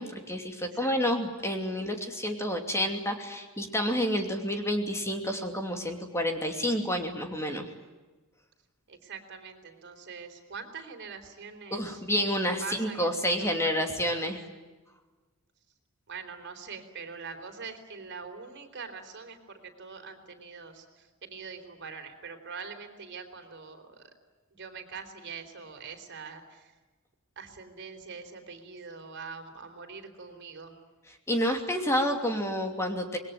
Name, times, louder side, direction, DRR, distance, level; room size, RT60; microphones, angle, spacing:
voice 1, 0.0-7.7 11.7-14.4 31.3-33.2, equal, 15° left, 4 dB, 2.8 m, -29 dB
voice 2, 0.6-1.2 8.9-12.0 12.6-14.3 16.1-24.1 24.5-26.7 27.4-30.8, right 5 dB, 55° right, 6 dB, 3.9 m, -43 dB
26.5 x 21.5 x 9.5 m, 1.2 s
head